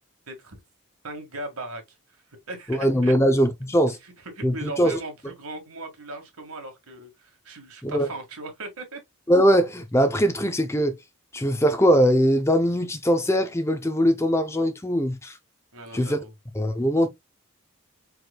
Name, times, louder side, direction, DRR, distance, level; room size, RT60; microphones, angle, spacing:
voice 1, 0.3-0.6 1.0-2.0 2.3-3.1 4.0-9.0 15.7-16.3, right 2 dB, 80° right, 1.9 m, -38 dB
voice 2, 2.8-4.0 4.4-5.0 7.8-8.1 9.3-10.9 11.3-15.4 15.9-16.2 16.5-17.1, equal, 10° left, 0.5 m, -21 dB
4.9 x 4.6 x 2.3 m
head